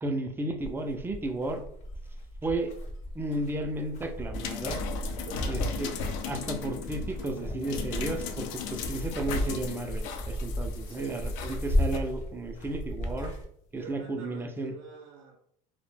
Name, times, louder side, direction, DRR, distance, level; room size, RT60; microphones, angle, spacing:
voice 1, 0.0-1.6 2.4-2.7 3.1-4.8 5.5-5.9 6.3-13.3 13.7-14.7, right 2 dB, 15° right, 5 dB, 0.3 m, -33 dB
sound 1, 0.6-13.4, equal, 40° left, 0.7 m, -35 dB
sound 2, 4.3-12.0 13.0-13.1, left 5 dB, 80° left, 0.4 m, -37 dB
voice 2, 5.2-5.7 10.8-11.3 13.8-15.4, right 5 dB, 80° right, 2 dB, 0.5 m, -45 dB
2.1 x 2.1 x 3.1 m, 0.68 s
supercardioid pair, 120°, 17 cm